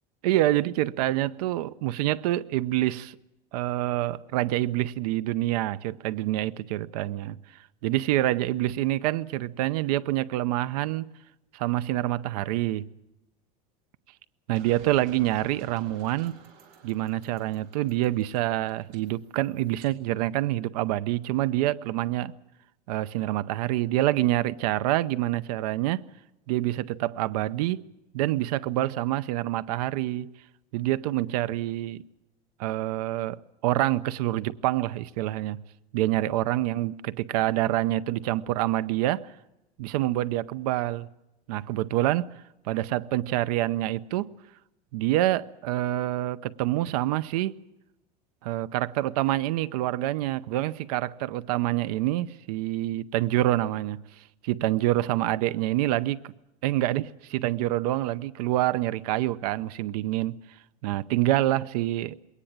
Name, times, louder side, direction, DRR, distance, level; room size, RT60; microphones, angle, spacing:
voice 1, 0.2-3.2 3.5-7.4 7.8-11.1 11.5-12.9 14.5-16.3 16.8-22.3 22.9-26.0 26.5-27.8 28.1-30.3 30.7-32.0 32.6-35.6 35.9-39.3 39.8-41.1 41.5-42.3 42.7-44.3 44.9-47.6 48.4-54.0 54.4-56.3 56.6-60.4 60.8-62.2, right 15 dB, 80° right, 0.7 m, -26 dB
sound 1, 14.5-19.9, right 5 dB, 50° right, 3.6 m, -52 dB
21.5 x 18.0 x 8.8 m
cardioid pair, 165°, 20 cm